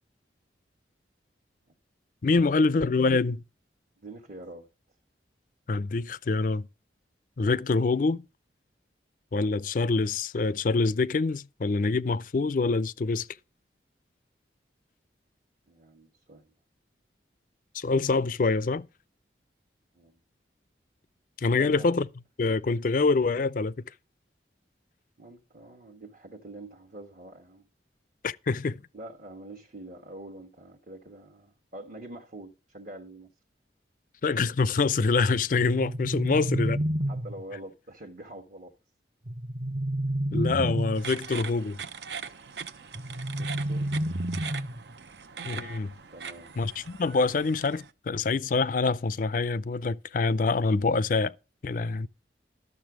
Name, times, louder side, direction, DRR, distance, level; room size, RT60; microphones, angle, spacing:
voice 1, 2.2-3.4 5.7-6.7 7.4-8.2 9.3-13.3 17.7-18.8 21.4-22.1 22.4-23.7 28.2-28.8 34.2-36.8 40.3-41.8 45.4-45.9 46.6-51.3 51.6-52.1, left 3 dB, 50° left, 0.4 m, -25 dB
voice 2, 4.0-4.7 15.7-16.5 19.9-20.2 21.5-21.9 25.2-27.7 28.9-33.3 37.1-38.7 43.4-44.1 46.1-46.5, right 1 dB, 50° right, 1.2 m, -45 dB
sound 1, 35.6-37.6 39.3-41.1 42.9-44.9, right 1 dB, 30° right, 0.7 m, -30 dB
sound 2, 40.9-47.9, right 6 dB, 70° right, 0.7 m, -41 dB
12.0 x 6.9 x 4.9 m
head